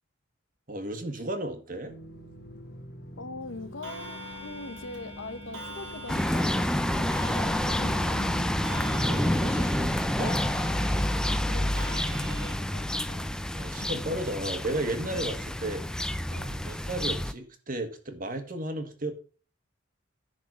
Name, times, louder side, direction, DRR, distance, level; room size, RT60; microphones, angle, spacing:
voice 1, 0.7-2.0 9.0-10.4 13.5-15.8 16.3-19.1, right 1 dB, 45° right, 1.5 m, -34 dB
sound 1, 1.8-9.7, equal, 55° left, 1.4 m, -46 dB
voice 2, 3.2-8.5 11.1-14.0 16.3-16.6, left 3 dB, 75° left, 0.9 m, -43 dB
Clock, 3.8-12.6, equal, 85° right, 2.3 m, -42 dB
sound 2, 6.1-17.3, left 1 dB, 5° left, 0.4 m, -28 dB
10.5 x 4.0 x 6.1 m
head